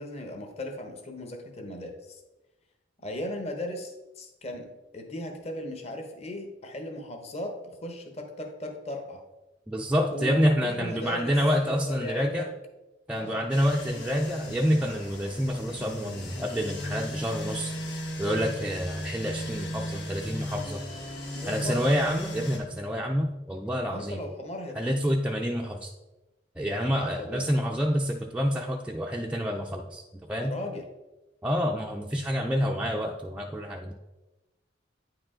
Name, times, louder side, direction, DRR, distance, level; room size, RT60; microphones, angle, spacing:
voice 1, 0.0-2.2 3.0-9.2 10.1-12.5 13.2-13.4 21.3-21.8 23.9-25.0 26.8-27.5 30.4-30.9, left 1 dB, 35° left, 4 dB, 1.0 m, -37 dB
voice 2, 9.7-12.5 13.1-17.7 18.2-20.8 21.5-24.2 24.8-25.9 26.6-30.0 30.3-30.5 31.4-33.9, equal, 5° right, 0 dB, 0.4 m, -28 dB
sound 1, 13.5-22.6, left 1 dB, 70° left, 1.8 m, -36 dB
9.3 x 4.8 x 3.7 m, 1.1 s
head